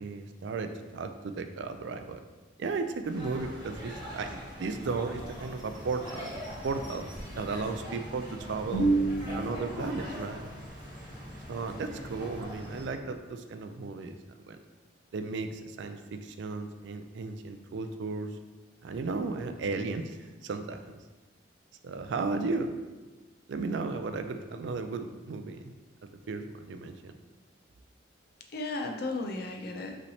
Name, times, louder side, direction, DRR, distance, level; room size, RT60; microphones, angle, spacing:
voice 1, 0.0-2.2 2.6-6.3 6.6-7.1 7.4-8.9 9.4-10.5 11.5-14.2 14.4-14.6 15.1-18.3 18.8-20.2 20.4-21.0 21.8-22.7 23.5-25.7 26.3-27.1, right 4 dB, 65° right, 8 dB, 0.3 m, -35 dB
sound 1, 3.0-12.9, equal, 20° right, 1.3 m, -42 dB
voice 2, 8.7-9.8 28.5-30.0, right 2 dB, 50° left, 3 dB, 0.5 m, -30 dB
5.4 x 3.2 x 2.8 m, 1.2 s
head